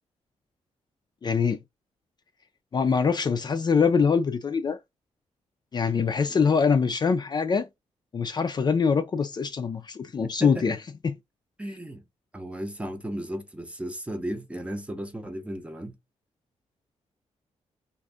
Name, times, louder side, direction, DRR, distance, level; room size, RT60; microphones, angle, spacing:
voice 1, 1.2-1.6 2.7-4.8 5.7-7.7 8.1-10.8 11.0-11.2, left 5 dB, 35° left, 0.4 m, -24 dB
voice 2, 10.4-10.8 11.6-12.0 12.3-16.0, right 1 dB, 10° right, 0.7 m, -35 dB
2.6 x 2.4 x 3.4 m
cardioid pair, 105°, 12 cm